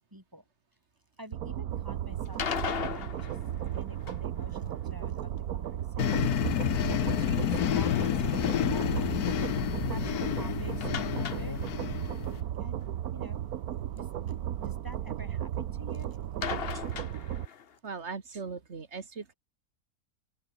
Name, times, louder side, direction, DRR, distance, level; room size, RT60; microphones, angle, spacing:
voice 1, 0.1-0.4 1.2-3.4 3.7-6.3 7.2-9.5 9.9-11.6 12.6-12.8 13.1-13.4 13.9-16.2, equal, 15° right, 5.1 m, -48 dB
sound 1, 1.3-17.5, right 11 dB, 80° right, 1.4 m, -35 dB
sound 2, 2.3-4.4 10.8-12.1 12.3-12.4 12.8-12.9 16.4-17.7, left 7 dB, 45° left, 1.0 m, -37 dB
sound 3, 6.0-12.4, left 11 dB, 85° left, 1.4 m, -29 dB
voice 2, 17.8-19.3, right 5 dB, 50° right, 2.1 m, -39 dB
open air
omnidirectional pair, 1.6 m